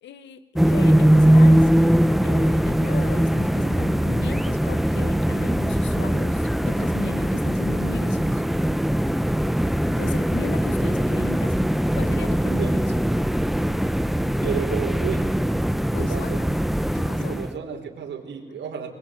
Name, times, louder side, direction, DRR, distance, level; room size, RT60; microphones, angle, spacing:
voice 1, 0.0-1.9 2.2-8.4 10.0-11.6 11.9-13.0 15.9-16.5 16.9-17.4, left 8 dB, 90° left, 13 dB, 1.5 m, -38 dB
sound 1, 0.5-17.5, equal, ahead, 0.7 m, -21 dB
voice 2, 14.4-15.3 16.0-16.4 17.2-18.9, right 7 dB, 80° right, 1 dB, 4.6 m, -31 dB
24.5 x 22.0 x 9.3 m, 1.3 s
cardioid pair, 110°, 18 cm